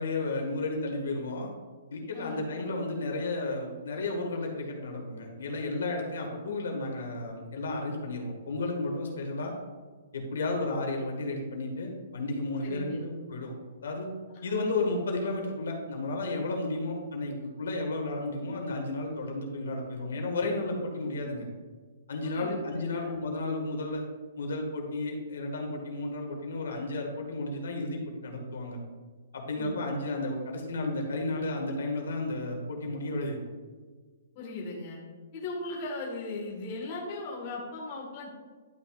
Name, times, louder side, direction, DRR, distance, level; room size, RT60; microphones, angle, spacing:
voice 1, 0.0-1.5 1.9-9.5 10.1-13.5 13.8-14.1 14.4-21.5 22.1-24.0 24.4-28.8 29.3-33.4, left 2 dB, 75° left, 1 dB, 1.7 m, -33 dB
voice 2, 2.1-2.5 12.6-13.0 14.5-14.6 22.2-22.6 22.9-23.2 29.5-29.9 34.3-35.0 35.3-38.4, left 2 dB, 30° left, -3 dB, 1.6 m, -38 dB
11.5 x 5.9 x 2.4 m, 1.5 s
hypercardioid pair, 170°, 0 cm